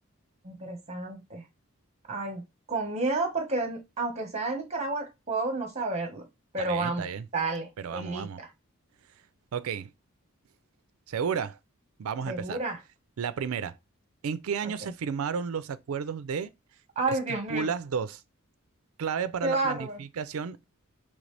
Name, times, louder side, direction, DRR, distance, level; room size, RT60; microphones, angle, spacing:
voice 1, 0.4-1.4 2.1-6.2 6.5-7.1 7.3-8.5 12.3-12.8 17.0-17.7 19.4-20.0, right 3 dB, 30° right, 1.2 m, -31 dB
voice 2, 6.6-7.3 7.8-8.4 9.5-9.9 11.1-11.6 12.0-12.6 13.2-13.7 14.2-16.5 17.1-17.2 17.5-18.2 19.0-20.6, right 6 dB, 75° right, 0.4 m, -32 dB
3.9 x 3.2 x 3.2 m
head